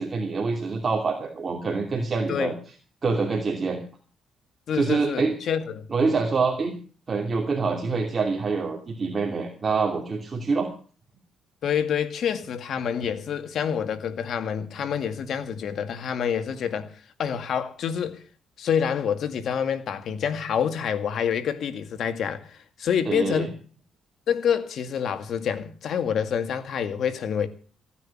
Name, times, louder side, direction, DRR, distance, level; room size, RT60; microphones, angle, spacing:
voice 1, 0.0-2.5 3.0-3.8 4.7-5.3 5.9-6.7 7.1-10.7 23.1-23.5, right 4 dB, 35° right, 2.9 m, -25 dB
voice 2, 4.7-5.9 11.6-18.2 18.6-23.6 24.3-27.5, left 8 dB, 65° left, 2.1 m, -27 dB
16.0 x 9.8 x 7.3 m
cardioid pair, 90°, 0 cm